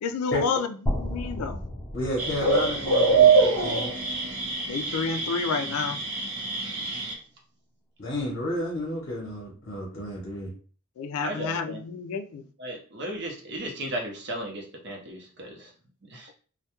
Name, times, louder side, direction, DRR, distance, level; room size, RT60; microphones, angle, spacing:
voice 1, 0.0-1.6 4.7-6.0 11.0-12.5, left 5 dB, 90° left, 8 dB, 0.3 m, -30 dB
sound 1, 0.9-4.9, equal, 10° left, 0.6 m, -34 dB
voice 2, 1.9-3.9 8.0-10.5, left 1 dB, 50° left, -3 dB, 0.7 m, -31 dB
sound 2, 2.2-7.1, right 4 dB, 85° right, 0.7 m, -24 dB
voice 3, 11.2-11.8 12.6-15.7 16.1-16.3, right 1 dB, 55° right, 1 dB, 0.6 m, -35 dB
2.2 x 2.1 x 2.9 m, 0.41 s
head